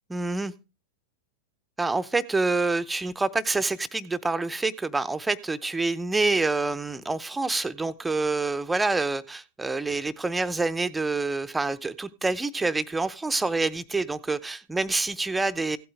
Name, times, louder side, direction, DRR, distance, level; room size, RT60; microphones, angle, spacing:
voice 1, 0.1-0.5 1.8-15.8, right 3 dB, 10° right, 14 dB, 0.7 m, -27 dB
16.0 x 8.6 x 3.3 m, 0.30 s
figure-of-eight pair, 90°, 0 cm